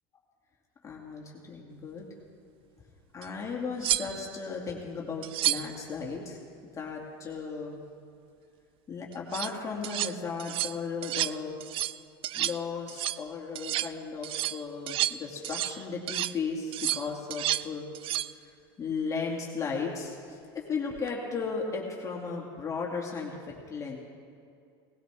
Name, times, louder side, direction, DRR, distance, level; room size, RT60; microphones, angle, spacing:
voice 1, 0.8-2.1 3.1-6.4 6.7-7.8 8.9-11.5 12.3-17.8 18.4-23.3 23.7-24.0, left 5 dB, 25° left, -2 dB, 2.3 m, -35 dB
sound 1, 3.2-3.3 3.8-4.4 5.2-5.8 9.1-9.5 9.8-10.1 10.4-10.8 11.0-11.4 11.6-12.0 12.2-12.6 12.9-13.2 13.6-13.9 14.2-15.8 16.1-16.4 16.7-17.7 17.9-18.3 20.9-21.1, right 13 dB, 45° right, 0.4 m, -31 dB
18.5 x 16.0 x 3.5 m, 2.3 s
supercardioid pair, 105°, 13 cm